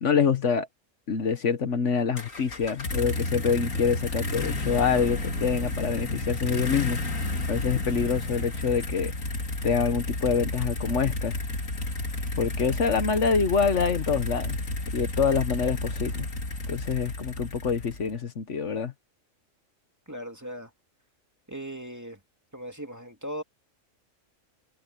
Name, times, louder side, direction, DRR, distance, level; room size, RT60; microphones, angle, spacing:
voice 1, 0.0-0.7 1.1-7.0 7.5-9.1 9.6-11.3 12.4-14.6 14.9-16.3 16.7-18.9, left 6 dB, 65° left, 1.5 m, -26 dB
sound 1, 2.2-18.1, left 2 dB, 85° left, 2.9 m, -31 dB
voice 2, 20.1-20.7 21.5-22.2 22.5-23.4, equal, 15° right, 2.6 m, -38 dB
omnidirectional pair, 1.3 m